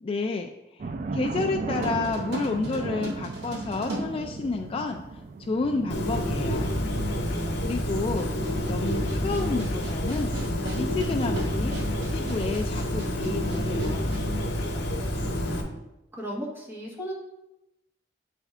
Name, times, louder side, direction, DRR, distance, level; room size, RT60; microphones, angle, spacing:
voice 1, 0.0-5.0 5.4-6.7 7.6-8.3 8.7-10.4 10.7-11.8 12.1-14.1, left 3 dB, 30° left, 4 dB, 0.3 m, -30 dB
sound 1, 0.8-15.9, right 3 dB, 45° right, 0.4 m, -38 dB
sound 2, 1.8-5.0 5.9-6.0 8.1-14.3, right 2 dB, 75° right, 1.7 m, -39 dB
Bird, 5.9-15.6, equal, 75° left, 0.9 m, -28 dB
voice 2, 7.1-7.9 14.5-15.7 16.2-17.1, equal, 15° right, -5 dB, 1.5 m, -37 dB
8.2 x 3.3 x 3.6 m, 0.92 s
head